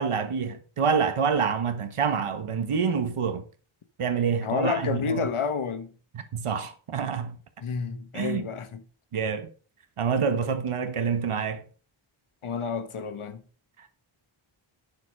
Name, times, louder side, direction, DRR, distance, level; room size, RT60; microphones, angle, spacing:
voice 1, 0.0-3.4 4.0-5.3 6.1-7.4 8.1-8.5 9.1-9.5 10.0-11.6 13.8-13.9, right 6 dB, 85° right, 1.4 m, -27 dB
voice 2, 4.4-5.9 7.6-8.8 12.4-13.4, left 6 dB, 75° left, 1.3 m, -30 dB
9.3 x 6.8 x 5.4 m
wide cardioid pair, 125°, 50 cm